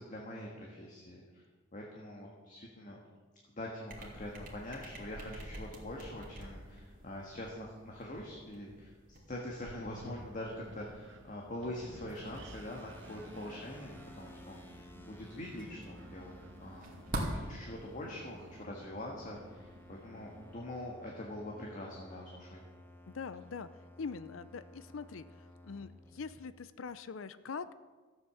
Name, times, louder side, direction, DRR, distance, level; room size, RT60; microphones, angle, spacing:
voice 1, 0.0-1.4 1.7-3.0 3.5-8.9 9.3-16.3 16.6-17.0 17.3-22.6, left 1 dB, 40° left, -1 dB, 1.7 m, -44 dB
sound 1, 3.9-18.6, right 1 dB, 45° right, 2.3 m, -47 dB
Wind, 9.6-20.6, right 2 dB, 70° right, 1.0 m, -56 dB
sound 2, 12.3-26.4, left 1 dB, 10° left, 1.1 m, -55 dB
voice 2, 23.1-23.7 24.0-25.2 25.6-27.7, left 5 dB, 85° left, 14 dB, 0.6 m, -43 dB
13.5 x 8.2 x 7.0 m, 1.4 s
head